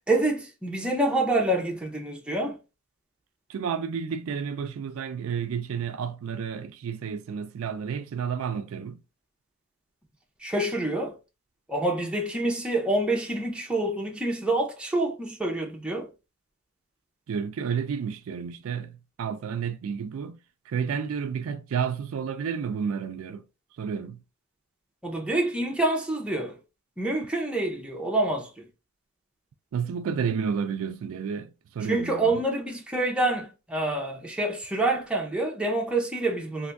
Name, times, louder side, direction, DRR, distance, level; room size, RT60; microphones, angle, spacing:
voice 1, 0.1-2.6 10.4-11.1 11.7-16.1 25.0-26.6 27.0-28.6 31.9-36.7, right 2 dB, 5° right, 0.6 m, -27 dB
voice 2, 3.5-9.0 17.3-20.4 20.7-23.4 23.8-24.2 29.7-32.4, right 7 dB, 65° right, 0.3 m, -31 dB
3.4 x 2.6 x 2.5 m
head